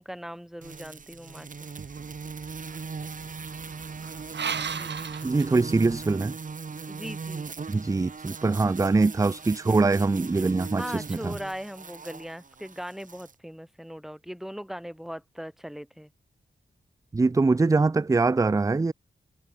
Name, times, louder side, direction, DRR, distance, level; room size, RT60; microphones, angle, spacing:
voice 1, 0.0-1.7 4.7-5.0 6.9-7.5 10.8-16.1, equal, ahead, 2.9 m, -39 dB
sound 1, 0.6-13.3, right 5 dB, 45° right, 2.5 m, -39 dB
sound 2, 1.8-6.1, right 6 dB, 70° right, 2.3 m, -37 dB
voice 2, 5.2-6.3 7.7-11.4 17.1-18.9, right 3 dB, 20° right, 0.4 m, -23 dB
wide cardioid pair, 170°, 19 cm